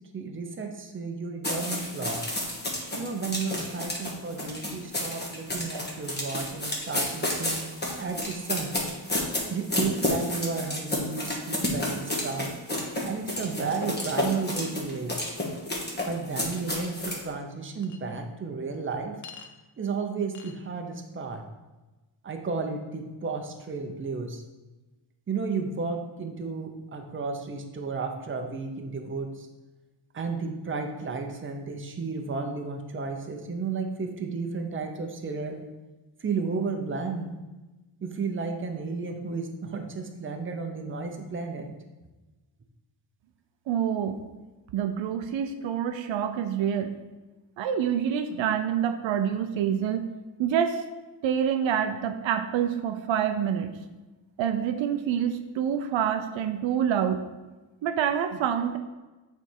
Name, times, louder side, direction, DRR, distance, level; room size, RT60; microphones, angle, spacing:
voice 1, 0.1-2.2 2.9-7.6 8.0-8.8 9.5-12.5 13.0-15.2 16.0-19.1 19.8-21.4 22.2-24.4 25.3-29.5 30.1-35.6 36.2-37.3 38.0-41.7, right 4 dB, 25° right, 4 dB, 0.8 m, -33 dB
sound 1, 1.4-17.2, left 1 dB, 20° left, 1.4 m, -31 dB
Chink clink, 17.8-18.0 19.2-19.5 20.3-20.6, left 6 dB, 40° left, 0.7 m, -44 dB
voice 2, 43.7-44.2 44.7-46.9 47.6-50.1 50.4-50.8 51.2-53.8 54.4-57.2 57.8-58.8, right 8 dB, 75° right, 7 dB, 0.6 m, -27 dB
6.9 x 3.5 x 4.5 m, 1.1 s
cardioid pair, 105°, 47 cm